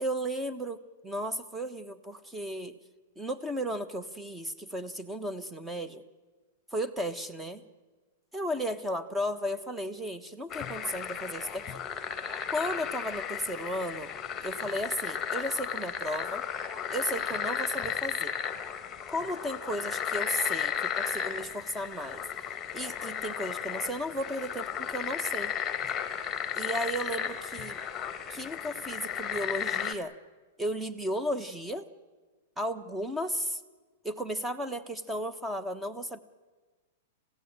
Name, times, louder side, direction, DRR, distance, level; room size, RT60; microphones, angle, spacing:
voice 1, 0.0-2.7 3.2-6.0 6.7-7.6 8.3-11.7 12.5-14.1 14.4-16.4 16.9-18.3 19.1-22.2 22.7-25.5 26.6-27.8 28.3-30.1 30.6-31.9 32.6-33.6 34.0-36.2, equal, 5° right, 11 dB, 1.2 m, -34 dB
sound 1, 10.5-30.0, left 8 dB, 20° left, 1.8 m, -34 dB
26.5 x 16.5 x 8.9 m, 1.3 s
hypercardioid pair, 140°, 0 cm